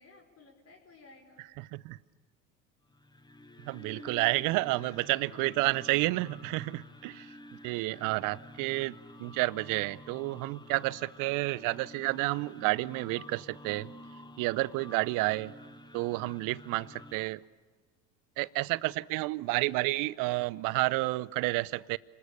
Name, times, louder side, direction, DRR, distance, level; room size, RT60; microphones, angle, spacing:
voice 1, 0.0-1.4 5.3-5.6 8.3-8.4 14.7-15.1, left 4 dB, 40° left, 5.1 m, -56 dB
voice 2, 1.6-2.0 3.6-7.3 7.6-13.9 14.4-15.5 15.9-17.4 18.4-22.0, right 21 dB, 55° right, 0.7 m, -30 dB
sound 1, 2.9-17.1, left 1 dB, 10° left, 1.1 m, -50 dB
29.0 x 20.5 x 6.9 m
hypercardioid pair, 70°, 39 cm